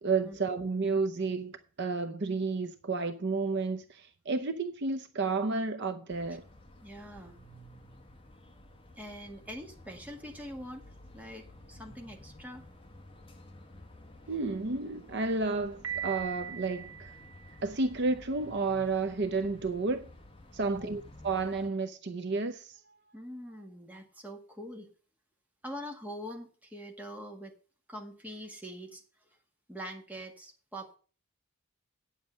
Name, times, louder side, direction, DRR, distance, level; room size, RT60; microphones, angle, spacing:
voice 1, 0.0-6.4 14.3-17.1 17.6-20.1 20.5-22.8, right 3 dB, 55° right, 0.7 m, -31 dB
sound 1, 6.1-21.7, left 1 dB, 25° left, 1.3 m, -53 dB
voice 2, 6.8-7.4 9.0-10.9 11.1-12.7 20.6-20.9 23.1-24.9 25.6-27.5 27.9-29.0 29.7-31.0, equal, 5° right, 1.7 m, -44 dB
Piano, 15.8-17.8, right 9 dB, 80° right, 1.3 m, -40 dB
9.4 x 7.3 x 6.3 m
head